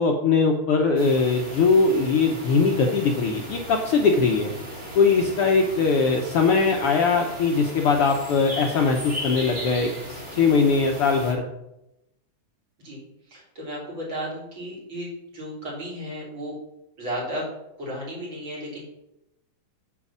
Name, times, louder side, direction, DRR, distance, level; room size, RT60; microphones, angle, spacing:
voice 1, 0.0-4.5 4.9-11.4, left 4 dB, 65° left, 1 dB, 1.6 m, -21 dB
sound 1, 1.0-11.3, equal, 25° right, 3.1 m, -37 dB
voice 2, 13.3-16.5 17.0-17.5 17.8-18.8, equal, 40° right, -5 dB, 4.6 m, -34 dB
9.8 x 5.3 x 7.2 m, 0.89 s
omnidirectional pair, 3.3 m